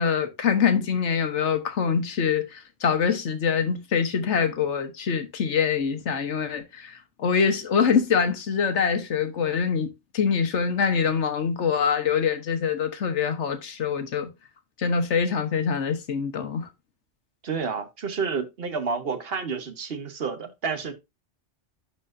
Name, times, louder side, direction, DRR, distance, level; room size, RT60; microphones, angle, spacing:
voice 1, 0.0-9.9 10.1-14.3 14.8-16.7, left 6 dB, 70° left, 1.4 m, -24 dB
voice 2, 17.4-20.9, right 5 dB, 55° right, 1.3 m, -30 dB
11.5 x 4.3 x 2.6 m
omnidirectional pair, 1.2 m